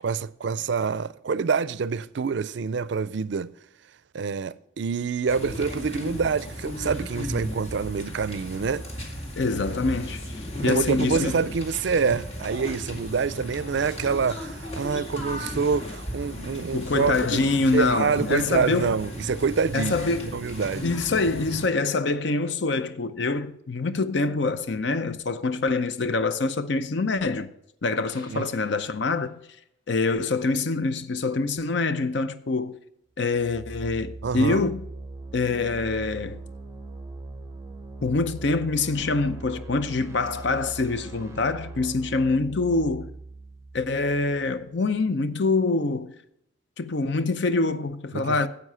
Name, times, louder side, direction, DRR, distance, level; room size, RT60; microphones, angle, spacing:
voice 1, 0.0-3.5 4.1-8.9 10.6-17.4 17.7-20.0 20.2-20.9 28.3-28.5 34.2-34.7 48.1-48.5, right 5 dB, 60° right, 0.4 m, -26 dB
sound 1, 5.3-21.7, left 1 dB, 30° left, 2.1 m, -35 dB
voice 2, 9.4-11.4 16.7-18.9 19.7-20.3 20.8-27.5 27.8-29.4 29.9-32.8 33.2-34.8 35.3-36.4 38.0-43.1 43.7-46.1 46.8-48.5, left 3 dB, 60° left, 0.6 m, -25 dB
sound 2, 28.0-29.6, left 2 dB, 85° left, 3.8 m, -53 dB
sound 3, 33.3-45.0, right 2 dB, 15° right, 0.7 m, -41 dB
9.8 x 8.3 x 5.6 m
head